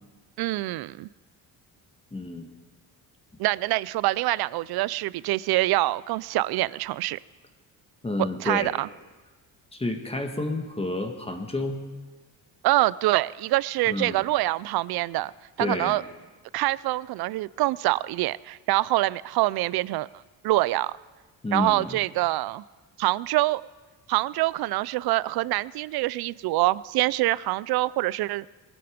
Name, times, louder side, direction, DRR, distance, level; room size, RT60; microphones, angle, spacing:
voice 1, 0.4-1.1 3.4-7.2 8.4-8.9 12.6-15.3 15.6-16.0 16.5-20.1 20.4-20.9 21.5-22.6 23.0-23.6 24.1-28.4, right 18 dB, 85° right, 0.5 m, -25 dB
voice 2, 2.1-2.5 8.0-8.7 9.7-11.8 13.9-14.2 15.6-16.0 21.4-22.0, left 2 dB, 15° left, 1.6 m, -30 dB
21.5 x 13.0 x 5.2 m
cardioid pair, 120°, 37 cm